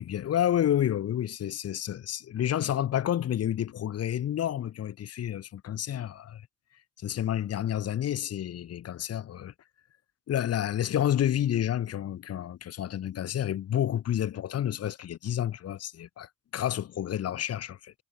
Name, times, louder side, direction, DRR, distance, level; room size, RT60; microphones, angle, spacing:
voice 1, 0.0-6.4 7.0-9.5 10.3-17.9, left 11 dB, 55° left, 1.0 m, -29 dB
cardioid pair, 90°, 30 cm